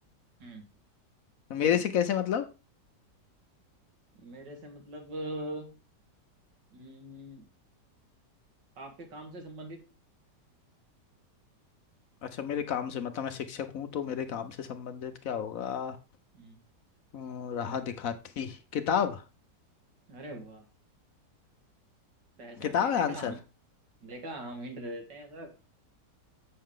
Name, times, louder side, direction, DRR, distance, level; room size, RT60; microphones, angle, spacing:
voice 1, 1.5-2.4 12.2-16.0 17.1-19.2 22.6-23.3, left 8 dB, 60° left, 1.0 m, -31 dB
voice 2, 4.2-5.7 6.7-7.5 8.8-9.8 16.3-16.6 20.1-20.6 22.4-23.4 24.0-25.5, right 1 dB, 85° right, 2.5 m, -42 dB
7.8 x 6.3 x 3.7 m
omnidirectional pair, 1.9 m